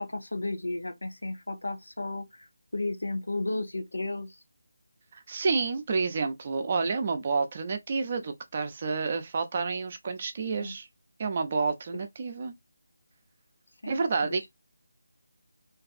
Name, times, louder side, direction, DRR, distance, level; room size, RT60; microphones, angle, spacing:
voice 1, 0.0-2.5 2.7-4.4 10.6-10.7 13.8-14.5, left 2 dB, 80° left, 0.7 m, -34 dB
voice 2, 5.1-10.9 11.2-12.5 13.9-14.5, right 4 dB, 40° right, 0.5 m, -29 dB
2.6 x 2.3 x 2.4 m
figure-of-eight pair, 160°, 0 cm